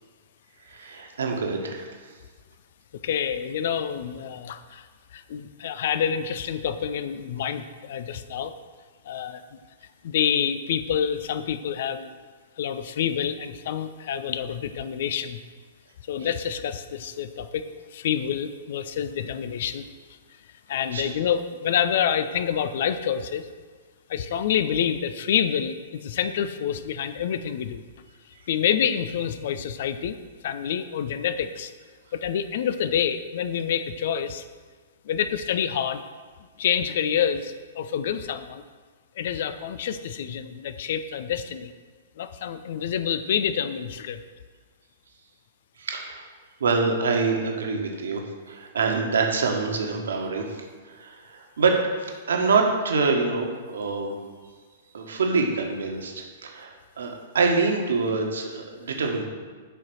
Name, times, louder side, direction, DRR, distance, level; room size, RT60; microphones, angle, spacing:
voice 1, 0.7-1.9 20.9-21.0 45.8-46.3 46.6-50.5 51.0-54.1 54.9-59.2, right 4 dB, 60° right, 2 dB, 1.6 m, -25 dB
voice 2, 3.0-4.8 5.1-8.5 9.1-9.4 10.0-12.1 12.6-15.4 16.1-17.7 17.9-19.8 20.7-23.5 24.1-27.8 28.5-30.2 30.4-31.7 32.1-34.4 35.1-36.0 36.6-38.6 39.2-41.7 42.2-44.2, left 8 dB, 50° left, 12 dB, 0.6 m, -27 dB
10.5 x 5.7 x 6.3 m, 1.5 s
figure-of-eight pair, 110°, 0 cm